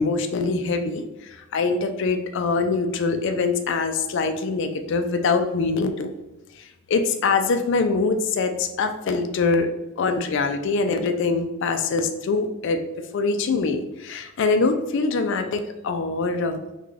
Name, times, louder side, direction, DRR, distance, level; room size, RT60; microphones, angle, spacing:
voice 1, 0.0-6.1 6.6-9.7 10.0-12.8 13.1-16.6, left 4 dB, 60° left, 8 dB, 0.3 m, -24 dB
3.7 x 2.2 x 3.2 m, 1.0 s
head